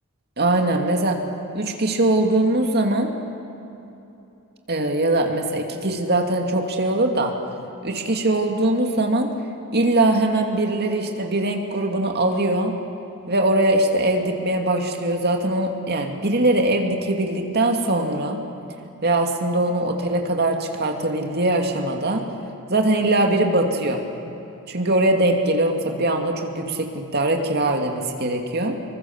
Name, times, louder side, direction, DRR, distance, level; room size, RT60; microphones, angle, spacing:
voice 1, 0.4-1.2 1.5-3.1 4.7-7.3 7.8-9.3 9.7-12.7 13.3-18.4 19.0-22.2 22.7-24.0 24.7-28.8, right 1 dB, 45° right, 3 dB, 2.4 m, -21 dB
27.0 x 23.0 x 7.2 m, 2.9 s
head